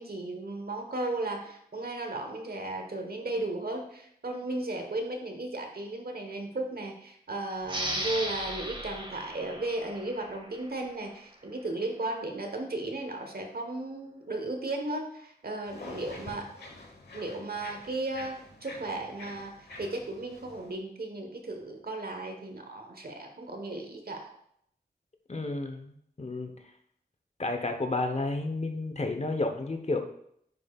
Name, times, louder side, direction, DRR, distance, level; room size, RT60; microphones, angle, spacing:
voice 1, 0.0-16.5 17.1-24.3, right 2 dB, 65° right, 4 dB, 1.2 m, -35 dB
sound 1, 7.6-10.9, right 1 dB, 30° right, 1.4 m, -36 dB
sound 2, 15.6-20.8, left 2 dB, 85° left, 1.1 m, -47 dB
voice 2, 25.3-26.5 27.4-30.0, left 2 dB, 40° left, 5 dB, 0.9 m, -31 dB
9.6 x 5.2 x 2.4 m, 0.71 s
cardioid pair, 45°, 17 cm